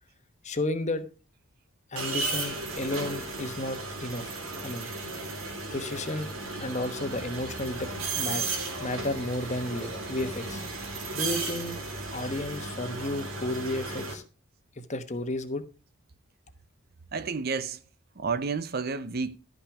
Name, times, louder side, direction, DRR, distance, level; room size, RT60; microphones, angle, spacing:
voice 1, 0.4-1.0 1.9-4.3 4.6-4.9 5.7-6.3 6.6-8.4 8.8-10.6 11.1-11.8 12.1-14.2 14.8-15.6, left 1 dB, 35° left, 1.1 m, -32 dB
sound 1, 2.0-14.1, right 3 dB, 75° right, 2.5 m, -35 dB
voice 2, 17.1-17.8 18.2-19.4, right 4 dB, 45° right, 0.6 m, -30 dB
12.0 x 5.9 x 4.9 m
head